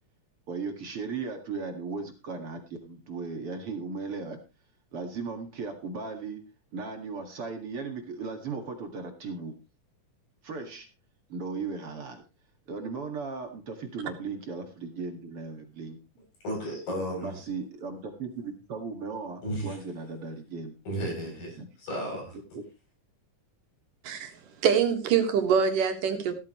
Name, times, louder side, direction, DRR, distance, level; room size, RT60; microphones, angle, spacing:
voice 1, 0.5-4.4 4.9-6.4 6.7-9.6 10.4-10.9 11.3-12.2 12.7-16.0 17.2-20.7 21.6-21.7, right 4 dB, 45° right, 2.5 m, -36 dB
voice 2, 16.4-17.4 19.4-19.8 20.9-22.4, equal, 80° left, 9.4 m, -33 dB
voice 3, 24.6-26.3, right 7 dB, 80° right, 3.2 m, -24 dB
15.0 x 13.5 x 3.1 m
omnidirectional pair, 3.8 m